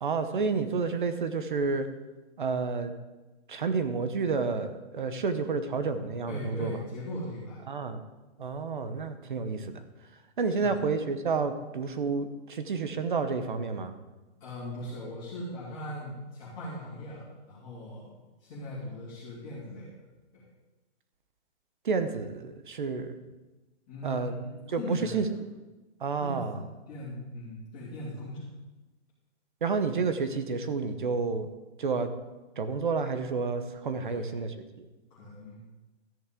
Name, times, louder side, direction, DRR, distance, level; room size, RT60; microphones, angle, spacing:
voice 1, 0.0-1.9 2.4-2.9 3.5-6.8 7.7-8.0 8.4-9.8 10.4-13.9 21.8-23.1 24.0-24.3 24.7-25.2 26.0-26.6 29.6-31.5 31.8-32.1 32.6-34.9, right 4 dB, 45° right, 9 dB, 1.0 m, -30 dB
voice 2, 6.3-7.6 10.5-10.8 14.4-18.1 18.4-20.0 20.3-20.4 23.9-25.4 26.2-28.5 34.0-34.5 35.1-35.6, left 1 dB, 15° left, -10 dB, 2.7 m, -40 dB
13.5 x 10.0 x 3.8 m, 1.1 s
hypercardioid pair, 175°, 35 cm